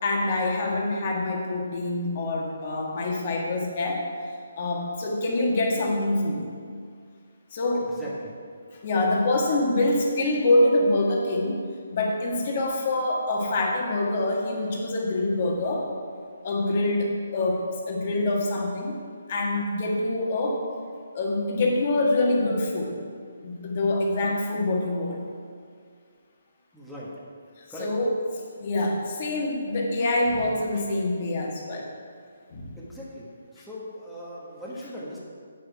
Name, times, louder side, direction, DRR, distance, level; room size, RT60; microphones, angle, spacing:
voice 1, 0.0-4.0 4.6-6.5 7.5-7.9 8.8-11.6 11.9-15.9 16.4-19.0 19.3-20.6 21.1-23.0 23.4-25.2 27.8-28.1 28.6-31.9 32.5-32.7, left 2 dB, 45° left, -1 dB, 1.6 m, -25 dB
voice 2, 7.7-8.4 26.7-27.1 27.7-27.9 32.8-33.3 33.5-35.2, equal, ahead, -8 dB, 1.3 m, -39 dB
8.5 x 6.3 x 4.6 m, 2.1 s
hypercardioid pair, 155°, 0 cm